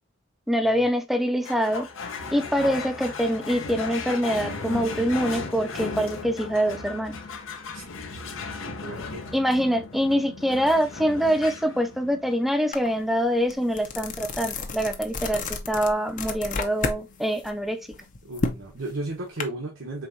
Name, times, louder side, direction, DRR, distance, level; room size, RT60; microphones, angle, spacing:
voice 1, 0.5-1.9 2.3-7.2 9.3-17.8, equal, ahead, 0.5 m, -25 dB
sound 1, 1.4-18.2, left 4 dB, 80° left, 0.8 m, -37 dB
voice 2, 8.8-9.3 18.2-20.1, right 2 dB, 80° right, 1.1 m, -34 dB
sound 2, 12.7-12.9 13.3-17.0 17.4-19.4, left 3 dB, 40° left, 0.7 m, -31 dB
4.6 x 3.6 x 2.7 m
head